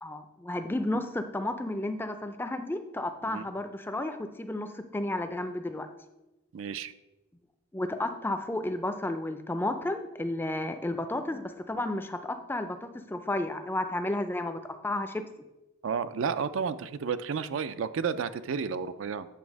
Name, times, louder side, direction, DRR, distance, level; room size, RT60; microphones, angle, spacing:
voice 1, 0.0-5.9 7.7-15.2, left 1 dB, 10° left, 8 dB, 0.4 m, -32 dB
voice 2, 6.5-6.9 15.8-19.3, right 6 dB, 70° right, 13 dB, 0.4 m, -31 dB
8.4 x 3.4 x 6.1 m, 1.0 s
head